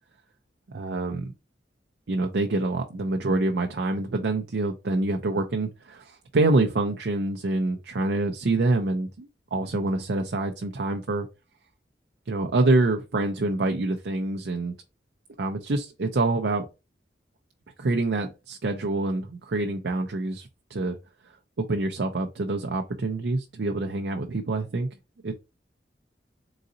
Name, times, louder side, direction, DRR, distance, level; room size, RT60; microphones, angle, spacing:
voice 1, 0.7-1.3 2.1-11.3 12.3-14.7 15.4-16.7 17.8-21.0 21.6-24.9 25.2-25.3, right 2 dB, 75° right, 0.5 m, -26 dB
4.0 x 3.8 x 2.6 m
head